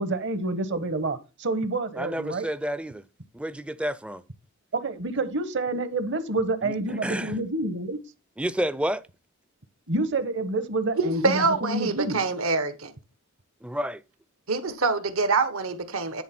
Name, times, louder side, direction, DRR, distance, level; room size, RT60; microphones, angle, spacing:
voice 1, 0.0-2.4 4.7-8.0 9.9-12.2, right 2 dB, 60° right, 1.1 m, -28 dB
voice 2, 2.0-3.0 3.3-4.2 6.6-7.3 8.4-9.0 13.6-14.0, equal, 5° right, 0.4 m, -30 dB
voice 3, 10.9-12.9 14.5-16.2, right 4 dB, 80° right, 1.3 m, -25 dB
10.5 x 3.7 x 5.9 m
head